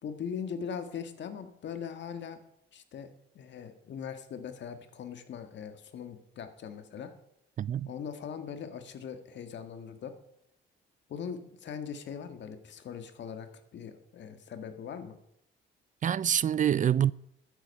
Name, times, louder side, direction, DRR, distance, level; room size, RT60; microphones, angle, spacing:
voice 1, 0.0-2.4 2.7-7.1 7.8-10.1 11.1-15.2, left 7 dB, 65° left, 1.7 m, -40 dB
voice 2, 7.6-7.9 16.0-17.1, right 9 dB, 40° right, 0.4 m, -26 dB
13.0 x 10.0 x 5.5 m
cardioid pair, 90°, 20 cm